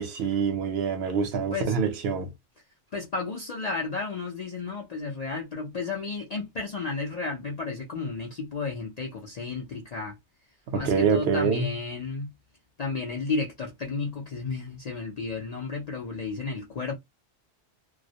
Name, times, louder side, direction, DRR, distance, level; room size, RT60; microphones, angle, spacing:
voice 1, 0.0-2.3 10.7-11.7, right 6 dB, 65° right, 0.8 m, -26 dB
voice 2, 2.9-10.2 10.7-12.3 12.8-16.9, left 4 dB, 55° left, 0.4 m, -32 dB
2.2 x 2.0 x 2.7 m
omnidirectional pair, 1.2 m